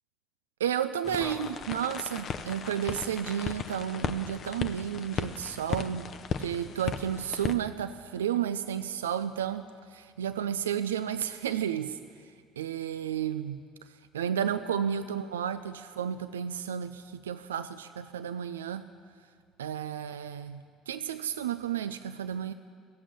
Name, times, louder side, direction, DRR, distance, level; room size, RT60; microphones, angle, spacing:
voice 1, 0.6-6.1 6.4-18.9 19.6-22.5, right 9 dB, 85° right, 11 dB, 0.3 m, -32 dB
sound 1, 1.0-7.5, left 7 dB, 50° left, 0.6 m, -36 dB
15.5 x 7.5 x 8.6 m, 2.1 s
hypercardioid pair, 60°, 0 cm